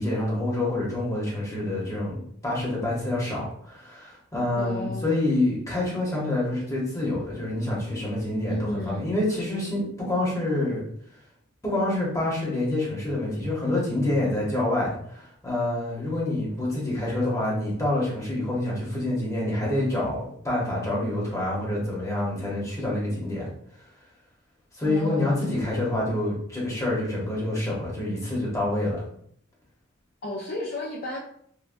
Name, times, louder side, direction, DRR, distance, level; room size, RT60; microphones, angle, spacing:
voice 1, 0.0-8.6 8.9-10.8 11.6-23.5 24.7-29.0, left 1 dB, 15° left, -5 dB, 0.9 m, -27 dB
voice 2, 4.6-5.2 8.5-9.1 24.8-25.6 30.2-31.2, left 1 dB, 45° left, -3 dB, 0.4 m, -33 dB
3.5 x 2.2 x 2.5 m, 0.67 s
head